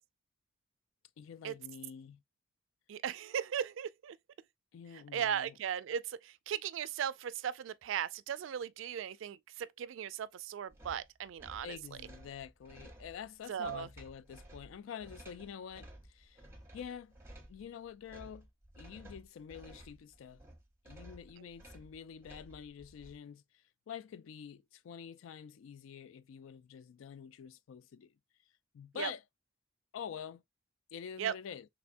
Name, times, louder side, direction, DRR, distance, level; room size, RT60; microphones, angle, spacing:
voice 1, 1.2-2.2 4.7-5.5 11.6-16.4 16.7-17.1 17.5-18.5 18.8-20.4 20.8-28.1 28.7-29.2 29.9-30.4 30.9-31.7, left 8 dB, 80° left, 0.3 m, -47 dB
voice 2, 2.9-4.2 5.1-11.8 13.5-13.9 29.0-29.1 31.2-31.3, right 9 dB, 75° right, 0.3 m, -37 dB
sound 1, 10.7-23.2, right 1 dB, 15° right, 0.7 m, -55 dB
3.4 x 3.3 x 2.5 m
head